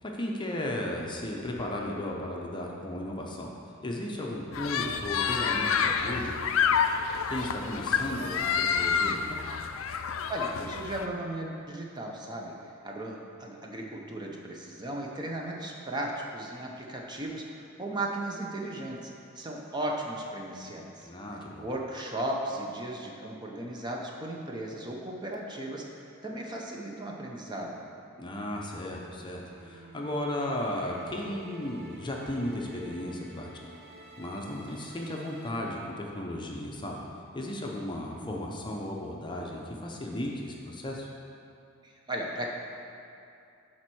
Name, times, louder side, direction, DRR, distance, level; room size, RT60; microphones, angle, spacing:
voice 1, 0.0-3.5 3.8-6.4 7.3-9.4 21.0-21.7 28.2-33.5 34.2-37.0 37.3-41.1, left 1 dB, 25° left, -1 dB, 0.7 m, -35 dB
sound 1, 4.5-11.1, left 6 dB, 70° left, 0.4 m, -28 dB
voice 2, 10.3-12.5 12.8-19.1 19.3-21.1 21.6-27.9 41.8-42.5, right 1 dB, 20° right, -1 dB, 0.7 m, -36 dB
sound 2, 28.9-35.5, right 1 dB, 50° right, 0.9 m, -49 dB
7.2 x 4.3 x 6.1 m, 2.6 s
head